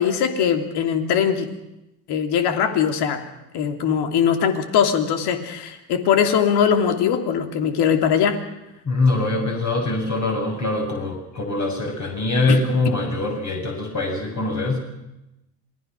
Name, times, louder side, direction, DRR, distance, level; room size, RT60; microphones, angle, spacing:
voice 1, 0.0-1.5 2.1-3.3 3.5-8.4 12.5-12.6, left 8 dB, 55° left, 6 dB, 3.0 m, -21 dB
voice 2, 8.8-14.8, left 2 dB, 40° left, 0 dB, 7.6 m, -23 dB
27.0 x 20.0 x 6.2 m, 0.92 s
hypercardioid pair, 70°, 46 cm